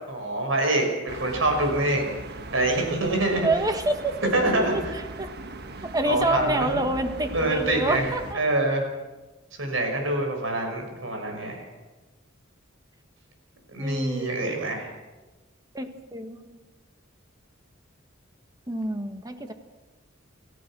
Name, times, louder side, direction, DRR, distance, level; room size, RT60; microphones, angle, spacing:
voice 1, 0.1-2.1 2.5-3.5 4.3-4.9 6.0-6.8 7.3-8.8 9.6-11.7 13.7-14.9, right 2 dB, 70° right, 3 dB, 6.1 m, -25 dB
sound 1, 1.1-8.4, right 2 dB, 55° right, 1.4 m, -39 dB
voice 2, 3.4-5.3 5.8-8.4 10.6-11.0 13.8-14.3 15.7-16.6 18.7-19.5, right 1 dB, 20° right, 6 dB, 1.7 m, -28 dB
29.5 x 14.5 x 6.3 m, 1.2 s
head